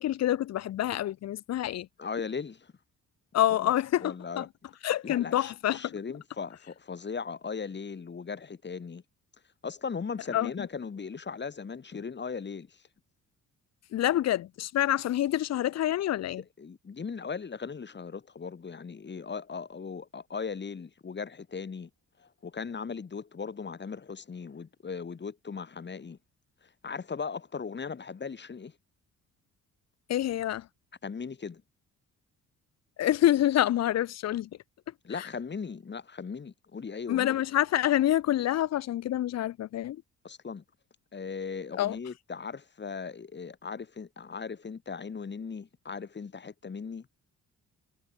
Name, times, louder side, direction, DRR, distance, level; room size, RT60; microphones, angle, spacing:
voice 1, 0.0-1.9 3.3-4.4 4.8-5.9 10.3-10.7 13.9-16.4 30.1-30.7 33.0-34.5 37.1-40.0 41.8-42.0, left 13 dB, 60° left, 0.7 m, -27 dB
voice 2, 2.0-2.7 3.5-3.7 4.0-4.5 5.0-9.0 9.6-12.8 16.6-21.9 22.2-26.2 26.6-28.7 31.0-31.6 35.0-37.4 40.2-40.6 41.1-47.1, left 5 dB, 35° left, 4.6 m, -38 dB
cardioid pair, 90°, 30 cm